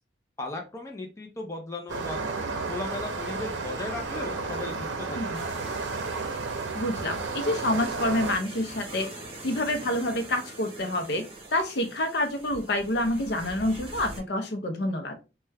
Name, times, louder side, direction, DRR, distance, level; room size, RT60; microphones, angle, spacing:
voice 1, 0.4-5.5, left 2 dB, 15° left, 1 dB, 0.4 m, -37 dB
sound 1, 1.9-8.3, right 3 dB, 80° right, 0.6 m, -32 dB
sound 2, 5.3-14.2, right 2 dB, 30° right, 0.9 m, -44 dB
voice 2, 6.7-9.1 9.4-11.3 11.5-15.2, left 1 dB, 60° left, 6 dB, 0.6 m, -28 dB
3.2 x 2.2 x 3.3 m, 0.30 s
head